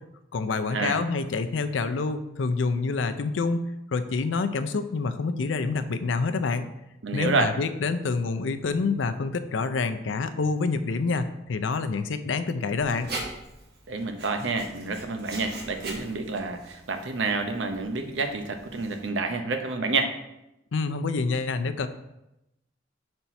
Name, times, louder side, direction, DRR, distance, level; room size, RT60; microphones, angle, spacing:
voice 1, 0.3-6.7 7.1-13.1 20.7-21.9, left 4 dB, 85° left, 10 dB, 0.5 m, -27 dB
voice 2, 7.0-7.5 13.9-20.1, right 3 dB, 80° right, 6 dB, 0.7 m, -28 dB
Writing, 12.7-19.1, right 2 dB, 60° right, 1.3 m, -42 dB
4.4 x 4.1 x 5.7 m, 0.89 s
head